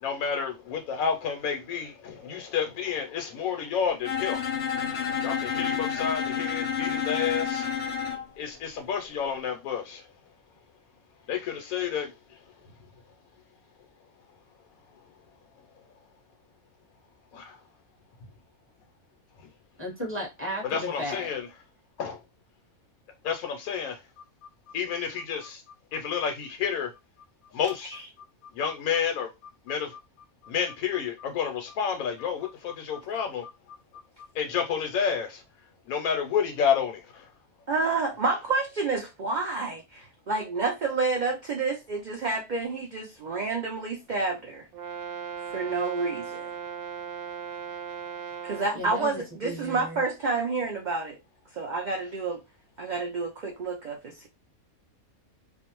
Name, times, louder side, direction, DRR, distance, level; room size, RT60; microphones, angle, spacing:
voice 1, 0.0-4.4 5.2-7.7 8.4-10.1 11.3-12.1 17.3-17.6 20.6-21.5 22.0-22.2 23.2-24.0 24.7-25.6 25.9-26.9 27.5-28.0 28.5-29.3 29.7-30.0 30.4-33.8 34.3-35.4 35.9-37.3, left 7 dB, 80° left, 1.0 m, -30 dB
Bowed string instrument, 4.0-8.3, left 7 dB, 55° left, 0.8 m, -29 dB
voice 2, 19.8-21.3 48.7-50.0, equal, 10° right, 0.9 m, -35 dB
voice 3, 37.7-44.7 45.5-46.5 48.4-51.2 51.6-52.4 52.8-54.3, right 3 dB, 65° right, 0.4 m, -29 dB
Brass instrument, 44.7-48.7, right 7 dB, 85° right, 1.1 m, -37 dB
2.6 x 2.1 x 2.9 m
omnidirectional pair, 1.5 m